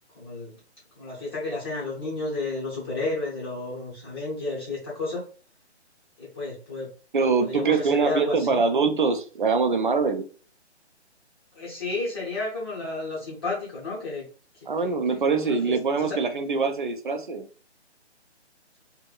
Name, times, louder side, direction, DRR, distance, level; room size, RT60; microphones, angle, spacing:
voice 1, 0.1-0.6 1.0-5.2 6.2-6.9 7.2-8.6 11.5-14.2 14.5-16.2, left 3 dB, 20° left, -7 dB, 0.8 m, -32 dB
voice 2, 7.1-10.2 14.7-17.5, right 4 dB, 45° right, 6 dB, 0.5 m, -23 dB
3.4 x 2.1 x 2.3 m, 0.39 s
figure-of-eight pair, 145°, 34 cm